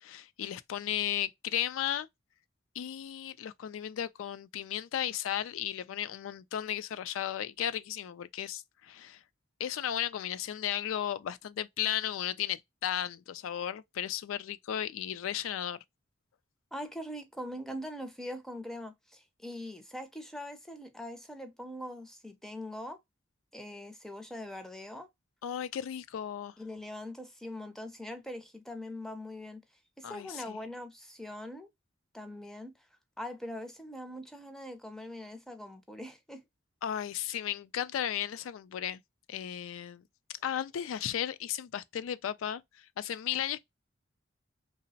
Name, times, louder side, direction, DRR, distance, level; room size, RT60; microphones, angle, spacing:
voice 1, 0.0-2.1 2.7-9.2 9.6-15.8 25.4-26.5 30.0-30.6 36.8-39.0 39.3-40.0 40.3-43.6, left 10 dB, 85° left, 0.3 m, -35 dB
voice 2, 16.7-23.0 23.5-25.1 26.6-29.6 30.0-31.7 32.1-32.7 33.2-36.4, left 1 dB, ahead, 0.4 m, -42 dB
3.0 x 2.0 x 2.6 m
head